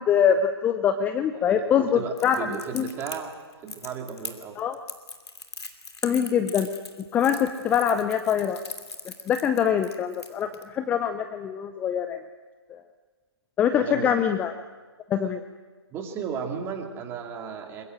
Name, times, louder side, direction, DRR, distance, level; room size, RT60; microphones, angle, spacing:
voice 1, 0.0-2.4 2.7-2.9 4.6-4.8 6.0-6.7 7.1-8.6 9.3-12.2 12.7-12.8 13.6-14.5 15.1-15.4, left 8 dB, 10° left, 9 dB, 0.6 m, -24 dB
voice 2, 1.3-3.3 3.6-4.6 7.1-7.2 13.7-14.1 15.9-17.8, right 6 dB, 15° right, 3 dB, 2.5 m, -35 dB
Crackle, 2.2-10.6, left 3 dB, 75° left, 2.8 m, -40 dB
23.0 x 22.0 x 7.7 m, 1.4 s
figure-of-eight pair, 135°, 14 cm